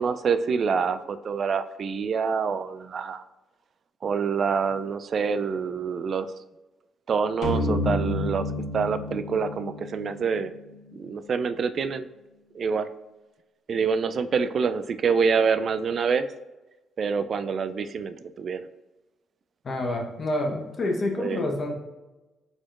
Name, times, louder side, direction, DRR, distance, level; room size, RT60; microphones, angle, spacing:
voice 1, 0.0-3.2 4.0-6.3 7.1-10.5 10.9-12.1 12.5-12.9 13.7-16.3 17.0-18.7 21.2-21.4, right 5 dB, 50° right, 11 dB, 0.3 m, -26 dB
sound 1, 7.4-10.9, left 2 dB, 75° left, 1.0 m, -30 dB
voice 2, 19.6-21.8, left 1 dB, 45° left, 1 dB, 1.0 m, -28 dB
4.6 x 4.1 x 2.5 m, 1.1 s
cardioid pair, 90°, 0 cm